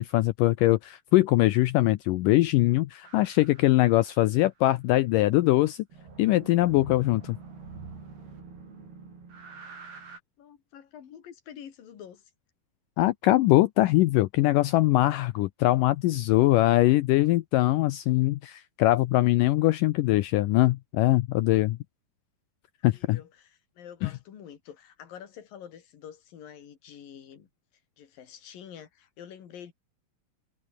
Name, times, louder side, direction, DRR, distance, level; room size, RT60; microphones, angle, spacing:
voice 1, 0.0-5.8 6.2-7.4 13.0-21.8 22.8-23.2 24.0-24.1, left 17 dB, 85° left, 2.0 m, -22 dB
sound 1, 3.0-4.5 5.9-10.2, right 4 dB, 75° right, 8.8 m, -46 dB
voice 2, 10.4-12.3 22.9-27.5 28.0-29.7, left 9 dB, 65° left, 4.1 m, -47 dB
omnidirectional pair, 4.5 m